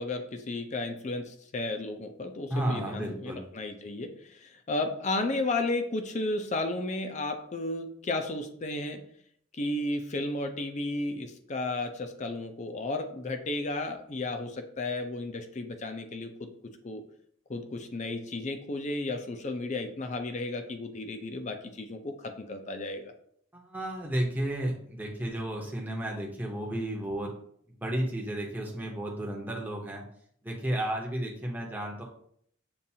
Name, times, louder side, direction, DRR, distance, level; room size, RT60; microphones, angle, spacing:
voice 1, 0.0-9.0 9.6-16.5 16.8-17.0 17.5-23.1, left 2 dB, 35° left, 6 dB, 0.5 m, -33 dB
voice 2, 2.5-3.4 23.5-27.3 27.8-30.0 30.4-32.0, right 1 dB, 10° right, -1 dB, 0.7 m, -32 dB
6.9 x 2.5 x 2.7 m, 0.66 s
head